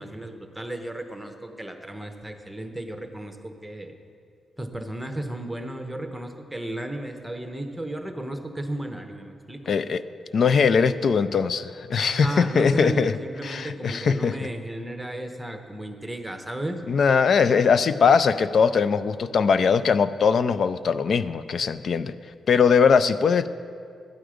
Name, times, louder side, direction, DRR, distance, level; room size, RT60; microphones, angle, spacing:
voice 1, 0.0-3.9 4.6-9.8 12.0-16.8, right 1 dB, 5° right, 5 dB, 1.0 m, -34 dB
voice 2, 9.7-10.0 10.3-14.4 16.9-22.1 22.5-23.5, left 6 dB, 60° left, 14 dB, 0.4 m, -21 dB
12.5 x 9.1 x 5.0 m, 2.3 s
cardioid pair, 90°, 0 cm